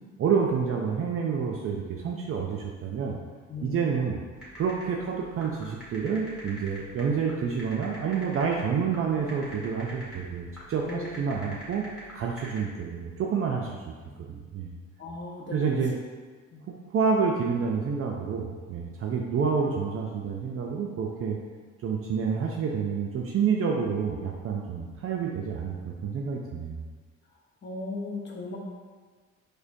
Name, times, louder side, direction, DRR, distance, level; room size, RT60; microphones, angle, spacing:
voice 1, 0.2-3.2 3.6-4.2 4.5-11.8 12.1-13.9 14.3-14.7 15.5-15.9 16.7-21.4 21.8-26.8, right 6 dB, 50° right, -1 dB, 0.4 m, -28 dB
voice 2, 3.5-4.0 10.8-11.3 14.0-14.2 15.0-15.9 16.5-16.7 27.6-28.6, left 2 dB, 40° left, -1 dB, 0.7 m, -37 dB
sound 1, 4.4-12.6, right 1 dB, 5° right, 1.4 m, -44 dB
4.8 x 2.2 x 2.6 m, 1.5 s
cardioid pair, 90°, 30 cm